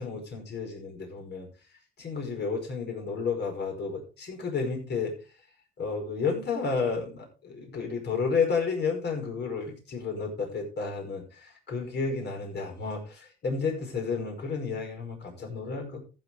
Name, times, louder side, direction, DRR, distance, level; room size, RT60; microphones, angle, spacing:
voice 1, 0.0-1.5 2.0-5.1 5.8-11.2 11.7-16.0, left 5 dB, 60° left, 2 dB, 5.2 m, -31 dB
14.5 x 7.7 x 3.6 m, 0.33 s
cardioid pair, 90°, 20 cm